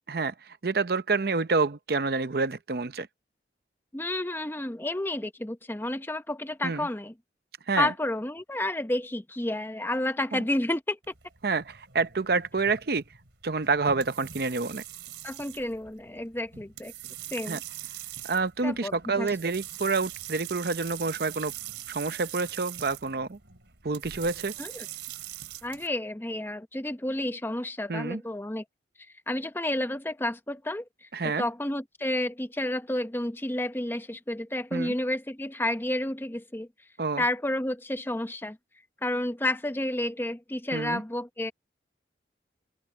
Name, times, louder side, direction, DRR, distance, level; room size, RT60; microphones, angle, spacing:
voice 1, 0.1-3.1 6.6-6.9 7.7-7.9 10.3-10.4 11.4-13.0 13.4-14.8 17.5-17.6 18.2-21.5 21.9-23.4 23.8-24.5 27.9-28.2 31.1-31.4 34.7-34.9 37.0-37.2 40.7-41.0, right 4 dB, 60° right, 0.7 m, -28 dB
voice 2, 3.9-7.1 7.8-11.0 15.2-16.9 17.3-17.6 18.6-19.3 24.6-24.7 25.6-28.6 29.3-36.7 37.2-38.6 39.0-41.5, left 1 dB, 10° left, 0.7 m, -30 dB
sound 1, 11.0-25.9, right 11 dB, 85° right, 3.2 m, -42 dB
open air
head